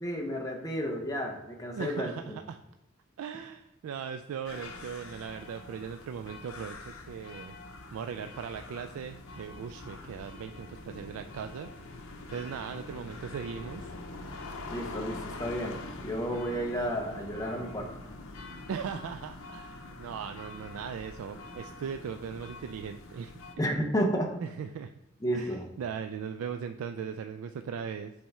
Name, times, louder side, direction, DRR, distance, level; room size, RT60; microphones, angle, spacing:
voice 1, 0.0-2.4 14.7-17.9 23.6-24.3 25.2-25.6, equal, 15° left, 2 dB, 0.7 m, -32 dB
voice 2, 1.7-2.6 3.2-7.5 7.9-11.7 12.3-13.9 18.7-23.6 24.4-24.9 25.3-28.1, right 7 dB, 80° right, 7 dB, 0.3 m, -39 dB
sound 1, 4.4-23.5, left 2 dB, 80° left, 0.7 m, -44 dB
7.4 x 3.5 x 4.2 m, 0.95 s
head